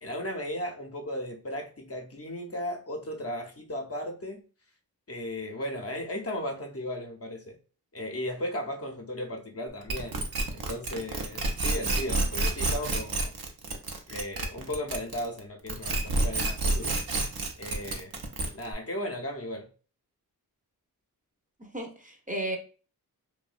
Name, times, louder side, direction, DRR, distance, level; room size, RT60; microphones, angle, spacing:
voice 1, 0.0-4.4 5.1-7.6 7.9-10.2 10.5-13.3 14.1-16.9 17.6-18.2 18.5-19.7, left 1 dB, 40° left, 0.5 m, -36 dB
sound 1, 9.9-15.4 15.7-18.7, right 2 dB, 70° right, 0.6 m, -29 dB
voice 2, 21.6-22.6, right 1 dB, 20° right, 0.6 m, -34 dB
2.6 x 2.1 x 2.4 m
wide cardioid pair, 40°, 38 cm